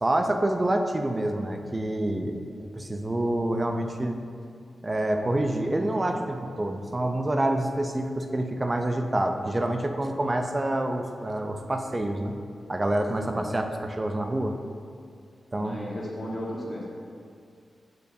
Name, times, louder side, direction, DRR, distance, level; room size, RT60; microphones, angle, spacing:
voice 1, 0.0-4.1 4.8-12.3 12.7-14.6 15.5-15.8, right 1 dB, 25° right, 5 dB, 0.5 m, -27 dB
voice 2, 13.1-13.6 15.5-16.9, left 1 dB, 40° left, -4 dB, 1.6 m, -35 dB
6.8 x 6.6 x 2.7 m, 2.3 s
cardioid pair, 75°, 0 cm